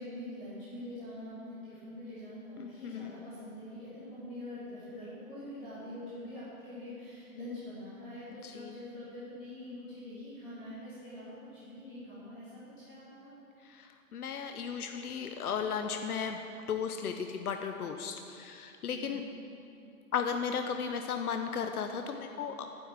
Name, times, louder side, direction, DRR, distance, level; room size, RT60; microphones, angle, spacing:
voice 1, 0.0-13.3 18.9-19.2, left 1 dB, 15° left, -12 dB, 3.3 m, -44 dB
voice 2, 2.6-3.1 8.4-8.7 13.6-16.4 16.7-19.2 20.1-22.7, left 6 dB, 85° left, 6 dB, 1.0 m, -35 dB
11.5 x 10.0 x 7.4 m, 2.7 s
hypercardioid pair, 175°, 44 cm